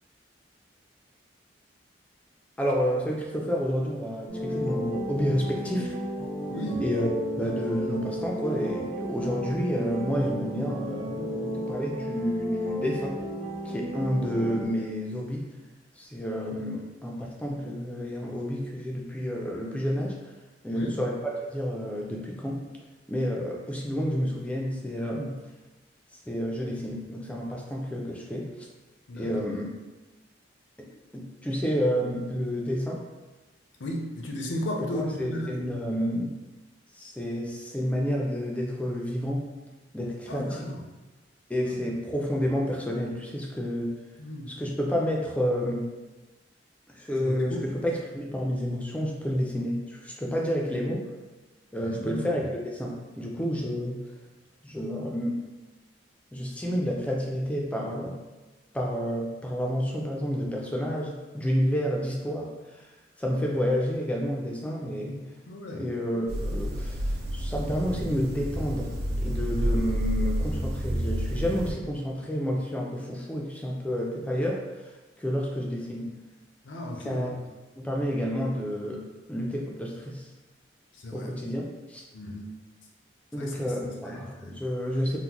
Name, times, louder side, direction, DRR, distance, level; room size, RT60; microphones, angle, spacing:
voice 1, 2.6-6.0 6.8-13.2 13.6-15.6 16.0-20.2 20.6-22.6 23.1-25.3 26.3-28.7 29.1-29.7 30.8-33.0 34.8-36.4 36.9-39.5 39.9-40.7 41.5-43.9 44.5-45.9 46.9-51.1 51.7-54.0 54.6-55.5 56.3-58.2 58.7-62.9 63.2-65.3 65.7-74.9 75.2-76.1 77.0-77.4 77.8-80.3 81.1-82.0 83.3-85.2, equal, 5° left, -1 dB, 0.3 m, -30 dB
sound 1, 4.3-14.7, equal, 85° right, 1.1 m, -33 dB
voice 2, 6.5-6.8 20.7-21.0 29.1-29.5 33.8-35.5 40.3-40.8 41.6-41.7 44.2-44.5 47.2-47.7 51.8-52.3 65.5-65.8 76.6-77.3 80.9-81.3 82.1-82.5 83.4-83.6 84.0-84.6, left 1 dB, 80° left, 0 dB, 0.6 m, -35 dB
sound 2, 66.3-71.7, equal, 55° right, 0.4 m, -29 dB
3.7 x 2.1 x 2.9 m, 1.1 s
head